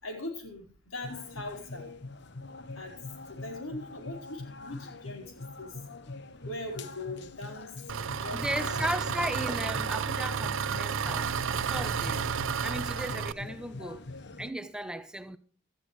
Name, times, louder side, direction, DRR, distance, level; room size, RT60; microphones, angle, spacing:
voice 1, 0.0-1.9 2.7-2.9 3.3-5.8 6.4-9.0, left 2 dB, 75° left, 4.6 m, -41 dB
sound 1, 1.0-14.5, left 3 dB, 55° left, 0.9 m, -43 dB
Engine, 7.9-13.3, right 7 dB, 65° right, 0.5 m, -31 dB
voice 2, 8.3-12.3 12.6-14.0 14.4-15.4, right 1 dB, 5° right, 0.8 m, -36 dB
17.5 x 13.0 x 3.2 m
head